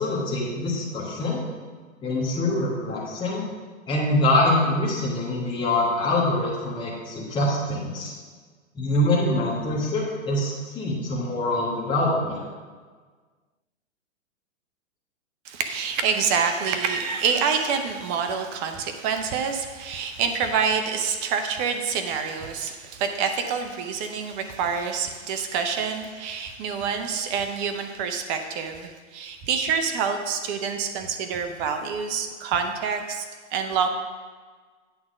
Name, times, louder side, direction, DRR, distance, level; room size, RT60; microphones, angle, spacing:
voice 1, 0.0-1.4 2.0-3.4 3.9-8.1 8.7-12.4, left 1 dB, 10° left, -7 dB, 1.5 m, -24 dB
voice 2, 15.4-33.3 33.5-33.9, right 6 dB, 25° right, 6 dB, 0.7 m, -27 dB
8.7 x 3.7 x 6.2 m, 1.5 s
hypercardioid pair, 125°, 40 cm